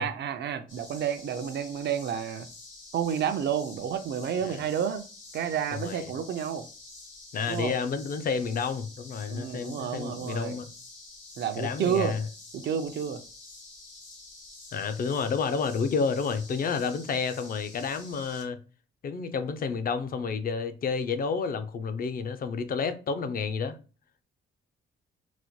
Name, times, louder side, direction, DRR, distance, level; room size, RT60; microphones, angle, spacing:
voice 1, 0.0-2.5 2.9-5.0 5.3-6.7 7.5-7.8 9.3-10.6 11.4-12.1 12.5-13.2, right 8 dB, 60° right, 0.5 m, -30 dB
sound 1, 0.7-18.4, left 2 dB, 80° left, 1.5 m, -48 dB
voice 2, 5.7-6.1 7.3-10.7 11.6-12.3 14.7-18.6 19.0-23.8, left 5 dB, 45° left, 0.5 m, -30 dB
4.0 x 2.0 x 3.0 m
cardioid pair, 90°, 20 cm